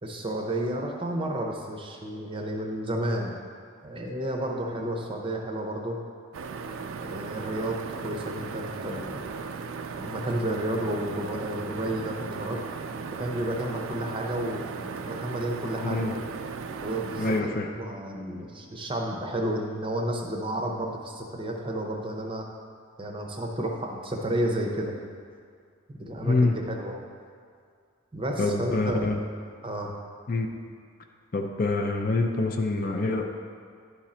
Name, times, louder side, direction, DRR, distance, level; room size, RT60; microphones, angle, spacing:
voice 1, 0.0-3.3 3.8-6.0 7.0-7.8 8.0-9.4 10.0-12.6 13.2-16.1 16.8-22.5 23.0-25.0 26.0-26.9 28.1-29.1 29.6-30.0, right 1 dB, 25° right, 1 dB, 0.6 m, -31 dB
sound 1, 6.3-17.4, right 5 dB, 65° right, 0.4 m, -37 dB
voice 2, 15.8-16.1 17.2-17.7 26.2-26.6 28.4-29.2 30.3-30.5 31.3-33.3, left 3 dB, 40° left, 4 dB, 0.4 m, -26 dB
11.0 x 3.8 x 4.2 m, 2.2 s
head